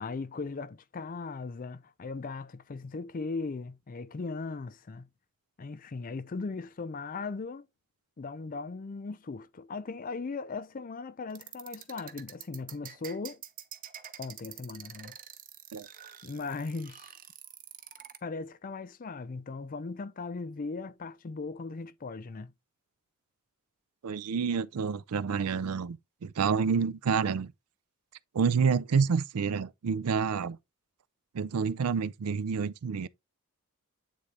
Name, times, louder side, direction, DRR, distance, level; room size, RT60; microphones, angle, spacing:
voice 1, 0.0-5.1 5.6-7.6 8.2-13.4 14.2-15.2 16.2-17.1 18.2-22.5, left 4 dB, 40° left, 0.4 m, -38 dB
sound 1, 11.3-18.2, right 9 dB, 40° right, 0.8 m, -46 dB
voice 2, 24.0-27.5 28.3-30.6 31.3-33.1, right 5 dB, 85° right, 0.4 m, -28 dB
8.4 x 3.8 x 3.2 m
head